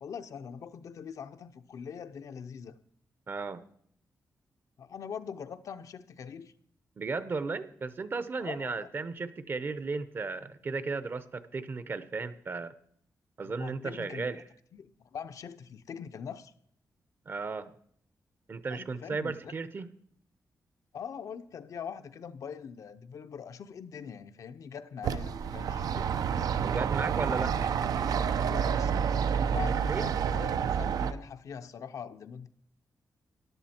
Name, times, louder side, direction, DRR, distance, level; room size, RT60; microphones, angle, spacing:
voice 1, 0.0-2.8 4.8-6.5 8.4-8.9 13.4-14.4 14.7-16.5 18.7-19.6 20.9-26.1 28.5-32.5, left 7 dB, 65° left, 10 dB, 0.6 m, -43 dB
voice 2, 3.3-3.6 7.0-12.7 13.4-14.4 17.3-17.7 18.5-19.9 26.6-27.6 29.8-30.1, right 4 dB, 35° right, 14 dB, 0.7 m, -35 dB
sound 1, 25.0-31.1, right 7 dB, 85° right, 0.6 m, -29 dB
13.5 x 11.0 x 4.3 m, 0.64 s
wide cardioid pair, 160°, 6 cm